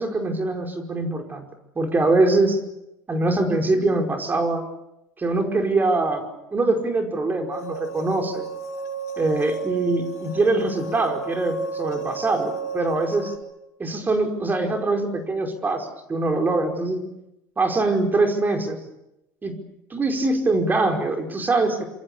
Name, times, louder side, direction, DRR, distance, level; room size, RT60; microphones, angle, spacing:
voice 1, 0.0-1.5 1.8-2.6 3.1-4.6 5.2-6.2 6.5-8.5 9.2-13.3 13.8-17.0 17.6-18.8 19.4-19.6 19.9-21.8, right 2 dB, 20° right, 3 dB, 5.1 m, -23 dB
sound 1, 7.5-13.4, right 4 dB, 85° left, 3.3 m, -33 dB
27.5 x 26.0 x 7.1 m, 0.87 s
hypercardioid pair, 80°, 9 cm